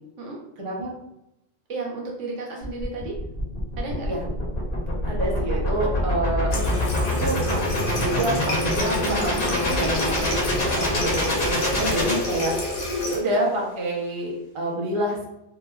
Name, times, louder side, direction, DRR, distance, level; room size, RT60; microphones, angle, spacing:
voice 1, 0.6-0.9 4.1-4.2 5.0-6.5 7.0-15.2, right 1 dB, 40° right, -3 dB, 0.5 m, -28 dB
voice 2, 1.7-3.2 3.8-4.1, right 3 dB, 70° right, -2 dB, 1.0 m, -33 dB
sound 1, 2.6-12.9, left 1 dB, 50° left, 0.9 m, -26 dB
Water tap faucet, 6.5-13.2, left 2 dB, 85° left, 1.1 m, -29 dB
2.8 x 2.4 x 2.3 m, 0.86 s
omnidirectional pair, 1.3 m